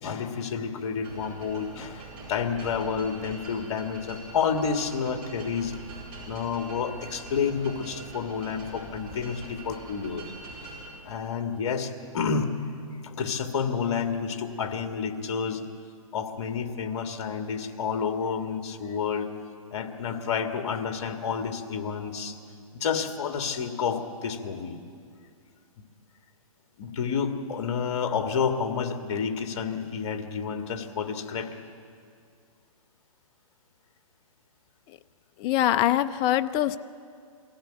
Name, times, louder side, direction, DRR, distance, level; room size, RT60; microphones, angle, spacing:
voice 1, 0.0-5.7 6.3-10.2 11.0-12.5 13.0-15.7 16.1-19.3 19.7-22.4 22.7-24.8 26.8-31.6, left 6 dB, 50° left, 6 dB, 2.0 m, -30 dB
sound 1, 1.0-10.9, right 2 dB, 30° right, 6.9 m, -44 dB
voice 2, 35.4-36.8, left 13 dB, 25° left, 12 dB, 0.5 m, -23 dB
23.0 x 15.5 x 8.9 m, 2.3 s
hypercardioid pair, 140°, 18 cm